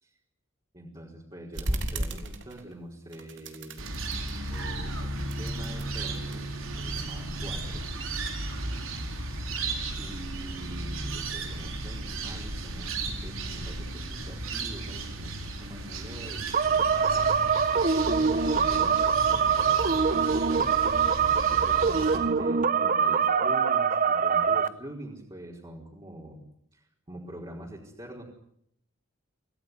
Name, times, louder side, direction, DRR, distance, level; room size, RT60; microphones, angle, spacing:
voice 1, 0.7-3.9 4.5-7.9 10.0-17.3 18.1-21.0 21.4-26.4 26.7-28.2, right 1 dB, 25° right, -3 dB, 4.6 m, -45 dB
sound 1, 1.5-2.8 3.1-4.7 5.1-6.4 7.0-8.1, right 1 dB, 65° right, 3.3 m, -36 dB
sound 2, 3.8-22.2, right 2 dB, 80° right, 4.8 m, -35 dB
sound 3, 16.5-24.7, right 6 dB, 45° right, 1.0 m, -24 dB
27.5 x 17.5 x 9.8 m, 0.73 s
head